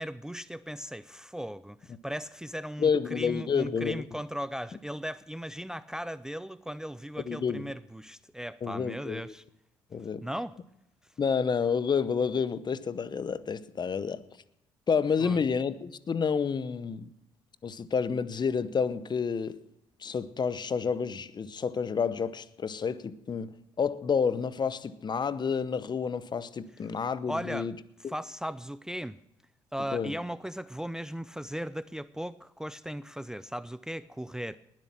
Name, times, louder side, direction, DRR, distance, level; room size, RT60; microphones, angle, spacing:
voice 1, 0.0-9.4 10.2-10.6 15.2-15.4 27.3-27.7 28.1-29.2 29.7-34.6, equal, 5° right, 0.5 m, -37 dB
voice 2, 2.8-4.0 7.3-7.6 8.6-9.3 9.9-10.2 11.2-14.2 14.9-17.1 17.6-19.6 20.0-27.7 28.0-28.1 29.9-30.1, left 6 dB, 40° left, 0.8 m, -29 dB
20.0 x 7.6 x 5.8 m
hypercardioid pair, 55°, 11 cm